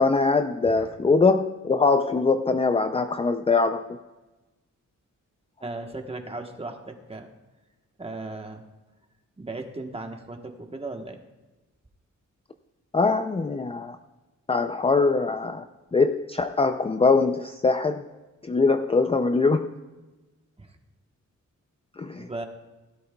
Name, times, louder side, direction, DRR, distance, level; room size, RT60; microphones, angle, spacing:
voice 1, 0.0-4.0 12.9-14.0 14.5-15.6 15.9-18.0 18.5-19.7 22.0-22.4, left 4 dB, 20° left, 7 dB, 0.4 m, -22 dB
voice 2, 5.6-7.3 8.0-8.6 9.4-11.2 20.6-20.7 22.2-22.5, right 2 dB, 20° right, 4 dB, 1.2 m, -36 dB
17.5 x 12.5 x 2.3 m, 1.1 s
wide cardioid pair, 135°, 32 cm